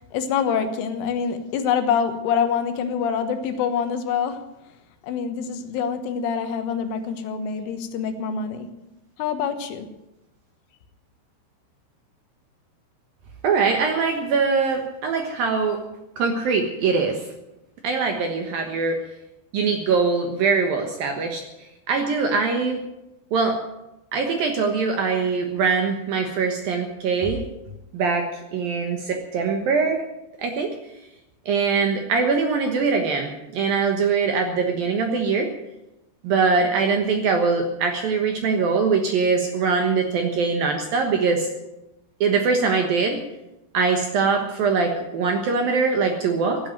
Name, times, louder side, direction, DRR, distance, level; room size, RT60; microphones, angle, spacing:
voice 1, 0.1-4.4 5.1-8.7 9.2-9.9, left 7 dB, 80° left, 3.7 m, -25 dB
voice 2, 13.4-15.8 16.2-17.3 17.8-19.0 19.5-22.8 23.3-23.6 24.1-27.4 27.9-30.0 30.4-30.7 31.5-35.5 36.2-41.5 42.2-43.2 43.7-46.6, right 4 dB, 65° right, 2.4 m, -22 dB
16.0 x 9.2 x 9.2 m
omnidirectional pair, 5.7 m